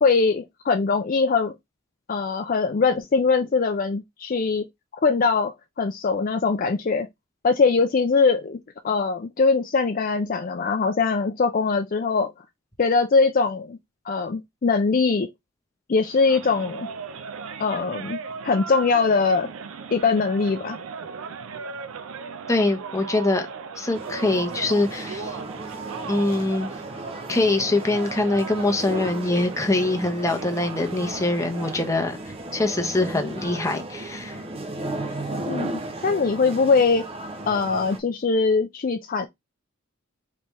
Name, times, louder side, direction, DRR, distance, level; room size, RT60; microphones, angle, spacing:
voice 1, 0.0-1.5 2.1-4.6 5.0-7.1 7.4-8.6 8.8-12.3 12.8-13.8 14.1-15.3 15.9-16.9 17.6-18.2 18.4-19.5 19.9-20.8 35.5-35.7 36.0-37.0 37.5-39.3, left 4 dB, 40° left, 0.4 m, -22 dB
sound 1, 16.0-32.2, right 5 dB, 70° right, 0.5 m, -38 dB
voice 2, 22.5-23.5 23.8-25.4 26.1-26.7 27.3-32.2 32.5-34.4, left 2 dB, 15° left, 0.7 m, -23 dB
sound 2, 23.9-38.0, right 2 dB, 25° right, 0.6 m, -35 dB
4.3 x 3.4 x 3.1 m
head